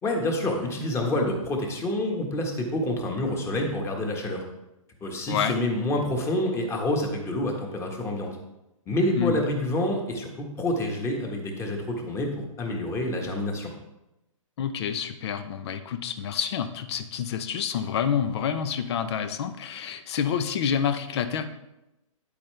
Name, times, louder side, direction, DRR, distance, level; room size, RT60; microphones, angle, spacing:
voice 1, 0.0-4.4 5.0-8.3 8.9-13.7, left 1 dB, 15° left, 2 dB, 1.5 m, -27 dB
voice 2, 5.3-5.6 9.2-9.4 14.6-21.4, left 8 dB, 50° left, 10 dB, 0.8 m, -28 dB
9.7 x 8.4 x 3.3 m, 0.92 s
hypercardioid pair, 140°, 17 cm